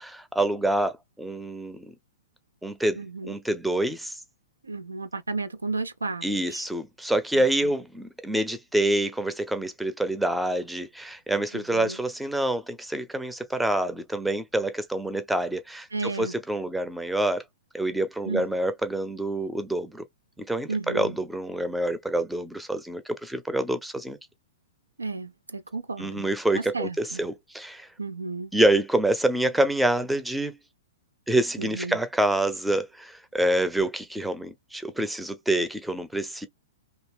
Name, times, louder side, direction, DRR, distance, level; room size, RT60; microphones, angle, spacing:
voice 1, 0.0-1.9 2.6-4.2 6.2-17.4 17.7-20.0 20.4-24.2 26.0-27.9 28.5-30.6 31.3-36.5, right 1 dB, 5° right, 0.6 m, -27 dB
voice 2, 3.0-3.3 4.6-6.6 7.3-7.7 11.5-12.0 15.9-16.3 18.3-18.4 20.7-21.2 25.0-26.3 26.5-27.2 28.0-28.5 31.6-32.0, right 3 dB, 85° right, 0.5 m, -33 dB
2.8 x 2.8 x 3.4 m
figure-of-eight pair, 110°, 0 cm